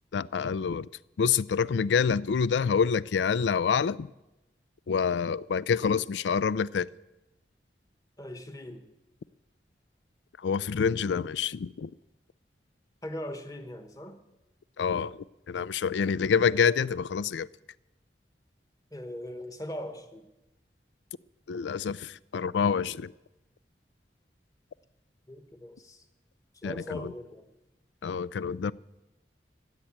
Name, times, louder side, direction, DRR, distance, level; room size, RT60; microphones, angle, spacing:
voice 1, 0.1-0.9 1.2-4.1 4.9-6.9 10.4-11.9 14.8-17.5 21.5-23.1 26.6-27.0 28.0-28.7, left 6 dB, 90° left, 0.4 m, -27 dB
voice 2, 5.7-6.1 8.2-8.9 13.0-14.2 18.9-20.3 25.3-26.1 26.5-27.5, equal, 20° left, 1.2 m, -40 dB
15.0 x 8.0 x 8.7 m
head